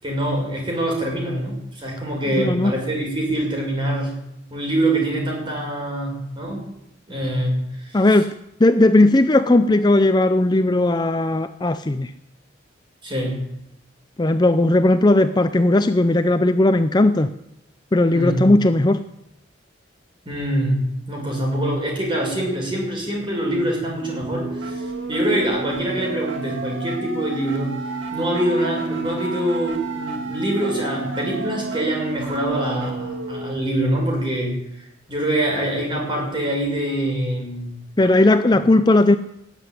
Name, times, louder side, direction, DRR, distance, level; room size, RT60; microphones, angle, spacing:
voice 1, 0.0-4.1 4.5-6.6 7.1-8.0 13.0-13.4 18.1-18.4 20.3-27.7 28.1-34.6 35.1-38.2 38.5-38.6, right 1 dB, 25° right, -1 dB, 5.8 m, -24 dB
voice 2, 2.4-2.7 7.9-8.3 8.6-12.1 14.2-17.3 17.9-19.0 38.0-39.2, left 2 dB, 20° left, 10 dB, 0.5 m, -17 dB
sound 1, 24.0-34.0, right 3 dB, 85° right, 2.1 m, -31 dB
19.5 x 8.0 x 9.4 m, 0.84 s
head